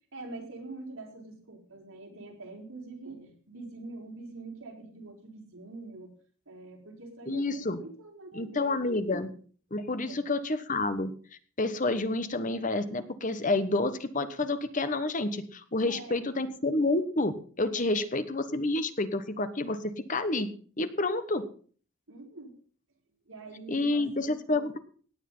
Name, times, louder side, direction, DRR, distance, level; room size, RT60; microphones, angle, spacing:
voice 1, 0.1-6.1 6.5-8.8 9.9-10.2 15.8-16.2 17.8-18.3 22.1-22.6 23.2-24.3, right 3 dB, 80° right, 0 dB, 4.7 m, -45 dB
voice 2, 7.3-7.8 8.3-9.3 9.7-11.1 11.6-20.5 20.8-21.4 23.7-24.8, left 2 dB, 35° left, 11 dB, 1.1 m, -29 dB
17.0 x 9.3 x 5.5 m, 0.44 s
head